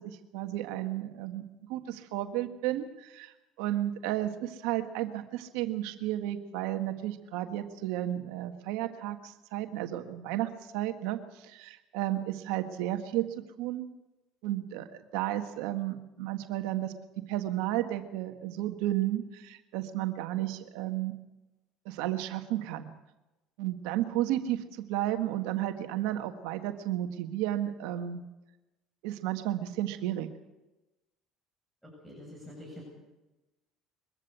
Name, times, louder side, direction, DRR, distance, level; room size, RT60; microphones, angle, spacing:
voice 1, 0.0-1.4 1.7-3.3 3.6-13.3 13.6-13.8 14.4-14.9 15.1-21.1 21.8-22.9 23.6-28.2 29.0-30.3, right 13 dB, 80° right, 7 dB, 1.6 m, -33 dB
voice 2, 32.0-32.8, left 1 dB, 5° right, -4 dB, 7.9 m, -45 dB
23.0 x 14.5 x 8.1 m, 1.0 s
supercardioid pair, 95°, 0 cm